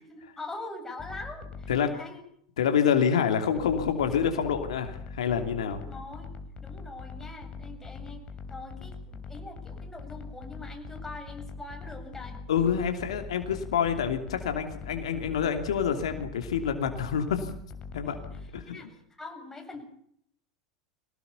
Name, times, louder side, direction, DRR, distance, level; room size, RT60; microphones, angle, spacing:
voice 1, 0.0-2.2 5.6-6.2 6.6-12.4 18.3-18.4 18.7-19.8, left 3 dB, 10° left, 3 dB, 7.9 m, -43 dB
sound 1, 1.0-1.8 3.6-18.6, left 4 dB, 35° left, 3.7 m, -42 dB
voice 2, 2.6-5.8 12.5-17.5 17.9-18.2 18.5-18.9, left 7 dB, 75° left, 6 dB, 2.9 m, -27 dB
24.5 x 18.5 x 7.1 m, 0.68 s
hypercardioid pair, 90°, 3 cm